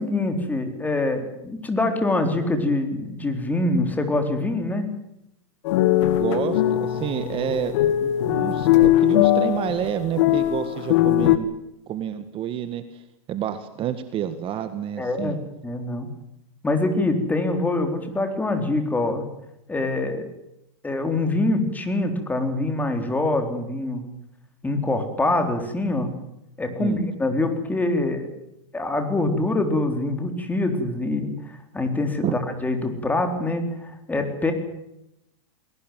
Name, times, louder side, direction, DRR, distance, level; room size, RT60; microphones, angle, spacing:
voice 1, 0.0-4.9 15.0-15.4 15.6-16.1 16.6-19.3 19.7-20.3 20.8-24.0 24.6-26.1 26.6-28.3 28.7-34.5, left 2 dB, 10° left, 6 dB, 4.0 m, -24 dB
sound 1, 5.6-11.4, left 13 dB, 60° left, 2.1 m, -20 dB
voice 2, 6.2-11.5 11.9-13.0 13.3-15.4 26.8-27.0 32.2-32.3, right 10 dB, 30° right, 10 dB, 1.7 m, -29 dB
21.5 x 19.0 x 9.3 m, 0.83 s
hypercardioid pair, 130°, 17 cm